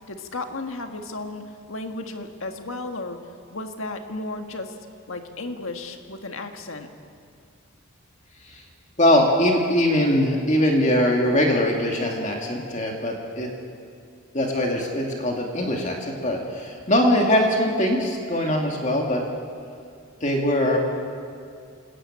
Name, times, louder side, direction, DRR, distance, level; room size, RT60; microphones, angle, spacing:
voice 1, 0.1-3.2 3.5-4.8 5.1-6.9, left 2 dB, 65° left, 5 dB, 1.7 m, -34 dB
voice 2, 9.0-13.5 14.3-19.2 20.2-20.8, left 1 dB, 35° left, 1 dB, 2.2 m, -22 dB
27.0 x 14.0 x 8.8 m, 2.3 s
head